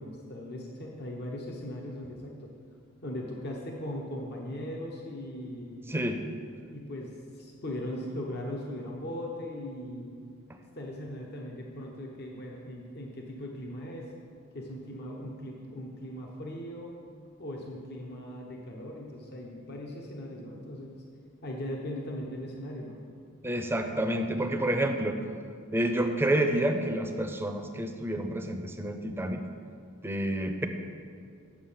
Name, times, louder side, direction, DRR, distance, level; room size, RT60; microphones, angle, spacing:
voice 1, 0.0-2.5 3.0-5.8 6.7-10.1 10.7-14.1 14.5-16.9 17.4-21.0 21.4-23.0, left 1 dB, 50° left, -1 dB, 1.0 m, -39 dB
voice 2, 23.4-25.2 25.7-29.4 30.0-30.7, right 1 dB, 10° right, 5 dB, 0.6 m, -29 dB
8.6 x 7.0 x 5.7 m, 2.3 s
head